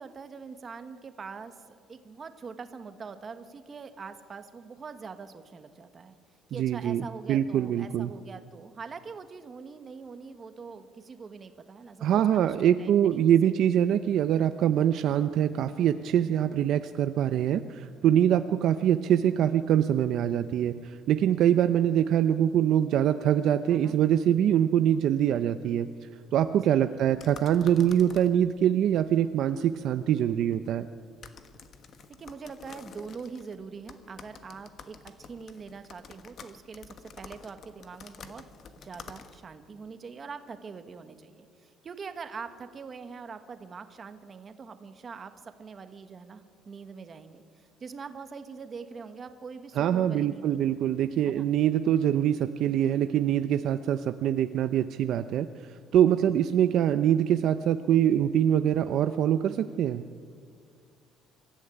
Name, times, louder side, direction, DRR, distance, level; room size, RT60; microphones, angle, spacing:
voice 1, 0.0-6.1 6.5-12.1 12.3-13.2 13.4-13.5 23.7-24.0 26.6-27.0 32.2-38.4 38.8-50.6 51.0-51.5, right 5 dB, 25° right, 9 dB, 1.3 m, -43 dB
voice 2, 6.6-8.1 12.0-25.9 26.3-30.9 49.8-55.5 55.9-60.0, right 10 dB, 50° right, 10 dB, 0.6 m, -24 dB
sound 1, 27.1-39.6, left 6 dB, 40° left, 1.3 m, -50 dB
24.5 x 14.5 x 9.9 m, 2.1 s
cardioid pair, 170°, 0 cm